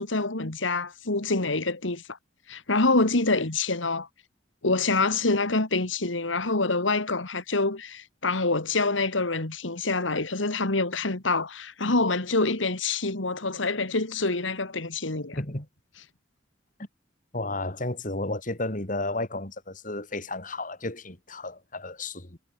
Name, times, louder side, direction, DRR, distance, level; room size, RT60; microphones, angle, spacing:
voice 1, 0.0-2.2 2.5-4.1 4.6-15.4, left 3 dB, 90° left, 2.5 m, -26 dB
voice 2, 15.3-15.7 17.3-22.4, left 2 dB, 45° left, 3.7 m, -32 dB
head